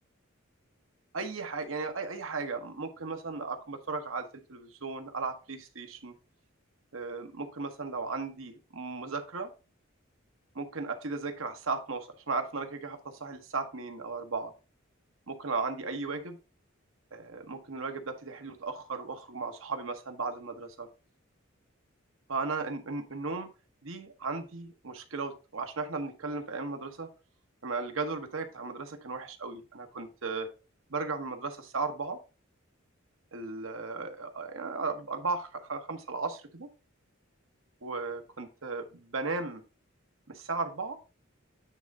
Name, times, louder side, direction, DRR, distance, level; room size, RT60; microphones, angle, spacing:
voice 1, 1.1-6.1 6.9-9.5 10.5-14.5 15.3-16.4 17.1-20.9 22.3-23.5 23.8-27.1 27.6-30.5 30.9-32.2 33.3-36.7 37.8-39.6 40.3-41.0, right 4 dB, 90° right, 6 dB, 1.2 m, -36 dB
9.1 x 3.6 x 4.1 m, 0.32 s
head